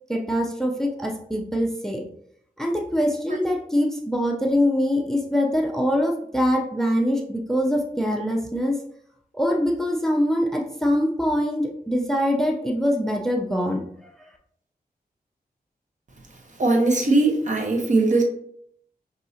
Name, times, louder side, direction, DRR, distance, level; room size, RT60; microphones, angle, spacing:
voice 1, 0.1-2.0 2.6-8.8 9.3-13.8, equal, 5° left, 1 dB, 0.5 m, -23 dB
voice 2, 16.6-18.2, right 2 dB, 50° right, 2 dB, 1.0 m, -20 dB
5.3 x 2.7 x 2.7 m, 0.68 s
wide cardioid pair, 70°, 16 cm